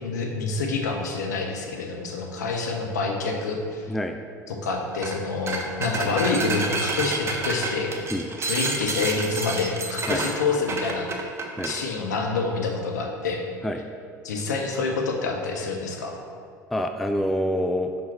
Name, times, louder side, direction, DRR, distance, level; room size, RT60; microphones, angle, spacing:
voice 1, 0.0-3.9 4.5-8.0 8.4-11.1 11.6-13.4 14.2-16.2, left 4 dB, 75° left, 2 dB, 0.9 m, -27 dB
sound 1, 4.9-5.2 5.5-11.8, right 3 dB, 30° right, 0.9 m, -29 dB
voice 2, 16.7-17.9, equal, ahead, 6 dB, 0.3 m, -26 dB
5.5 x 5.4 x 4.2 m, 2.2 s
figure-of-eight pair, 70°, 10 cm